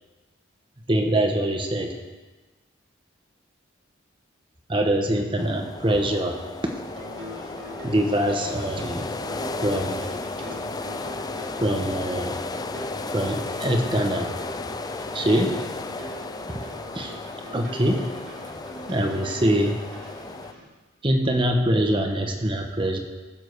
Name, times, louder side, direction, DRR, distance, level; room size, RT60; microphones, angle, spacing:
voice 1, 0.9-2.0 4.7-6.7 7.8-9.1 9.6-10.0 11.6-12.4 13.1-14.3 15.1-15.6 16.5-16.6 16.9-17.2 17.5-18.1 18.9-19.8 21.0-23.0, right 1 dB, 25° right, 3 dB, 1.3 m, -24 dB
sound 1, 5.4-20.5, left 3 dB, 20° left, 0.4 m, -34 dB
sound 2, 6.8-20.7, equal, 75° right, 4.1 m, -41 dB
20.5 x 7.4 x 4.8 m, 1.3 s
head